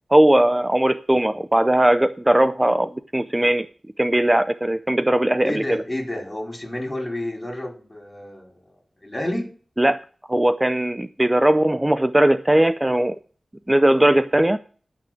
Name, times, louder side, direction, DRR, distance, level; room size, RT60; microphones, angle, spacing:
voice 1, 0.1-3.7 4.0-5.6 9.8-10.0 10.3-13.2 13.7-14.6, right 1 dB, 20° right, 12 dB, 0.5 m, -19 dB
voice 2, 5.4-8.5 9.0-9.5, left 1 dB, 25° left, 1 dB, 4.9 m, -30 dB
11.5 x 6.1 x 7.7 m, 0.42 s
cardioid pair, 55°, 0 cm